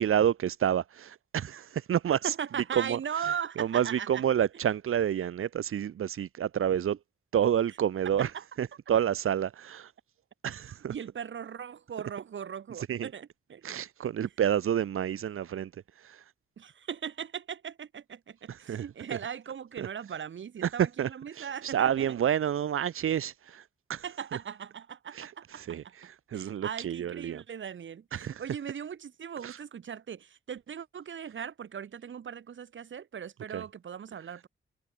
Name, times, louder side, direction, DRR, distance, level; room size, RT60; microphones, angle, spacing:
voice 1, 0.0-2.4 2.7-3.2 3.6-7.0 7.3-8.3 8.6-9.9 10.4-10.9 12.8-13.1 13.6-15.7 16.0-16.2 18.5-18.9 19.8-19.9 20.6-20.7 21.0-23.6 23.9-24.0 24.3-24.4 25.1-27.4 28.1-28.4 29.4-29.6 33.5-33.6, right 9 dB, 85° right, 2.0 m, -29 dB
voice 2, 2.2-4.2 8.2-8.4 10.9-13.6 16.6-22.1 24.0-25.9 26.3-34.5, right 8 dB, 65° right, 2.9 m, -39 dB
wide cardioid pair, 130°, 21 cm